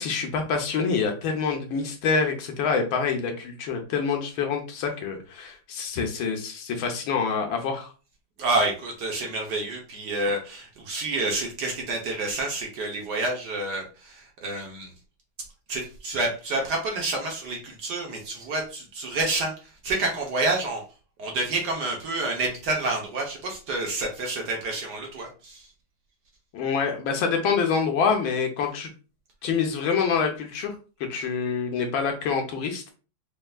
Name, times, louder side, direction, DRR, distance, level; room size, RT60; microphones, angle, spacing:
voice 1, 0.0-7.9 26.5-28.9 29.4-30.7 31.1-32.9, left 5 dB, 75° left, 4 dB, 1.5 m, -26 dB
voice 2, 8.4-14.9 15.7-19.5 19.8-20.8 21.2-25.6, right 2 dB, 60° right, 1 dB, 1.3 m, -28 dB
5.4 x 2.6 x 2.3 m, 0.34 s
omnidirectional pair, 2.3 m